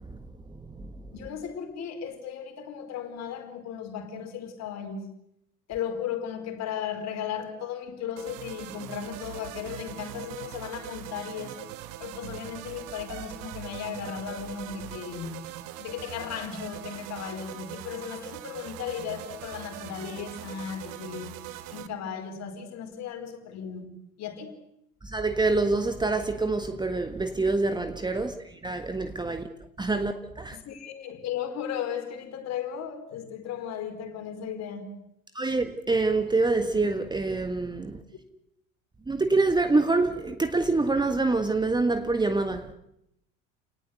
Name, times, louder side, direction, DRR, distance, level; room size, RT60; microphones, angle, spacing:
voice 1, 1.1-5.1 5.7-11.7 12.0-15.4 15.8-24.6 30.5-34.9, left 8 dB, 40° left, 4.9 m, -36 dB
sound 1, 8.2-21.9, right 13 dB, 50° right, 1.7 m, -41 dB
voice 2, 25.0-29.4 29.8-30.6 35.3-38.0 39.1-42.7, right 3 dB, 10° right, 1.6 m, -26 dB
29.5 x 19.0 x 8.0 m
figure-of-eight pair, 75°, 41 cm